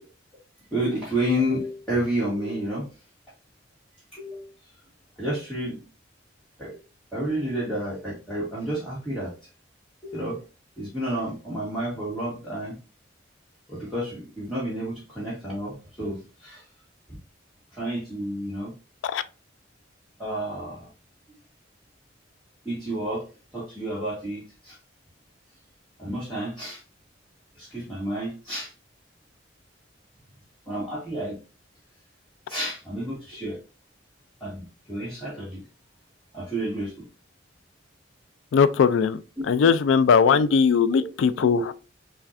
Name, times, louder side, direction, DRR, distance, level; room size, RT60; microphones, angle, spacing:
voice 1, 0.7-2.9 4.1-4.5 5.2-5.8 6.6-6.8 7.1-9.3 10.0-10.4 10.8-12.8 13.7-16.6 17.7-18.7 20.2-20.9 21.3-21.4 22.6-23.3 23.5-24.8 26.0-26.8 27.5-28.7 30.7-31.4 32.5-33.6 34.4-35.6 36.3-37.1 40.3-40.4 40.9-41.0 41.5-41.7, right 1 dB, ahead, 1.3 m, -30 dB
voice 2, 38.5-39.2 39.5-41.7, left 6 dB, 85° left, 0.3 m, -19 dB
5.7 x 2.2 x 2.5 m
head